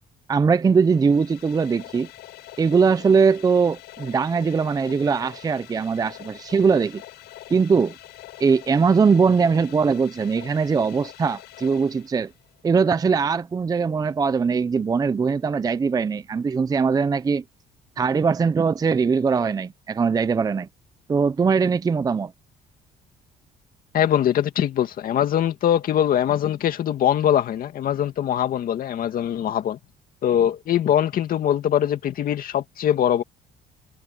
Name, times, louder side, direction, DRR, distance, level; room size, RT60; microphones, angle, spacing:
voice 1, 0.3-2.1 2.6-7.0 7.5-7.9 8.4-12.3 12.6-17.4 18.0-20.7 21.1-22.3, right 5 dB, 20° right, 0.5 m, -21 dB
sound 1, 0.7-12.6, left 15 dB, 80° left, 5.8 m, -44 dB
voice 2, 23.9-29.8 30.2-33.2, left 10 dB, 60° left, 2.2 m, -22 dB
cardioid pair, 110°, 17 cm